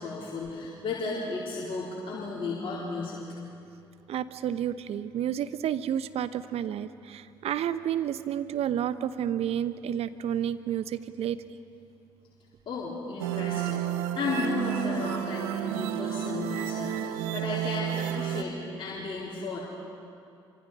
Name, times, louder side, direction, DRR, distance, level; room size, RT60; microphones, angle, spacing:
voice 1, 0.0-3.2 12.7-19.6, left 3 dB, 45° left, -6 dB, 4.2 m, -34 dB
voice 2, 4.1-11.4, right 10 dB, 55° right, 13 dB, 1.0 m, -30 dB
sound 1, 13.2-18.4, right 11 dB, 75° right, 1.0 m, -31 dB
27.0 x 25.5 x 5.5 m, 2.5 s
hypercardioid pair, 50°, 12 cm